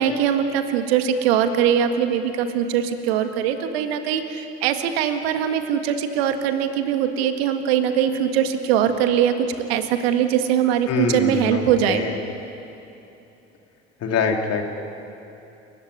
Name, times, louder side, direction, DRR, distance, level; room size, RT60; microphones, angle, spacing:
voice 1, 0.0-12.0, right 9 dB, 75° right, 7 dB, 1.9 m, -21 dB
voice 2, 10.9-12.1 14.0-14.6, left 5 dB, 50° left, 2 dB, 3.3 m, -24 dB
29.0 x 15.5 x 9.7 m, 2.8 s
hypercardioid pair, 60°, 32 cm